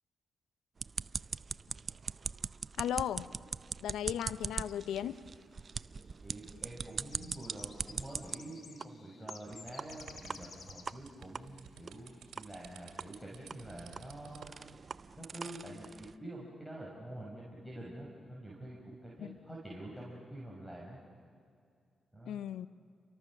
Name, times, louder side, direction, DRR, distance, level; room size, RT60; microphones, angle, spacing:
sound 1, 0.8-8.4 8.8-8.9 9.3-9.4 9.8-9.9 10.3-10.4 10.9-11.0 11.4-11.5 11.9-12.0 12.4-12.5 13.0-13.1 13.5-16.1, right 5 dB, 50° right, 0.6 m, -41 dB
voice 1, 2.8-3.3 3.8-5.2 19.2-19.4 22.3-22.7, left 10 dB, 85° left, 16 dB, 0.6 m, -36 dB
sound 2, 4.7-4.8 5.0-5.6 6.4-11.1 12.0-12.1 12.6-12.7 13.2-13.5 13.9-14.0 14.2-14.5, left 5 dB, 65° left, 2.0 m, -54 dB
voice 2, 6.2-14.5 15.2-21.0 22.1-22.4, right 1 dB, ahead, -4 dB, 6.5 m, -47 dB
sound 3, 9.5-14.6, right 8 dB, 85° right, 2.5 m, -54 dB
30.0 x 24.5 x 6.6 m, 2.3 s
supercardioid pair, 55°, 0 cm